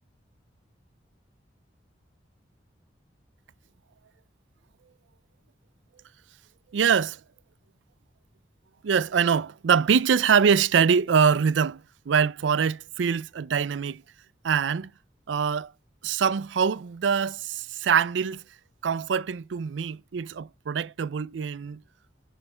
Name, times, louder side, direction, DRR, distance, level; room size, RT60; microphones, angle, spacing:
voice 1, 6.7-7.2 8.8-11.8 12.1-14.0 14.4-14.9 15.3-15.7 16.0-18.4 18.8-21.8, right 6 dB, 80° right, 0.4 m, -24 dB
10.5 x 5.7 x 4.4 m
head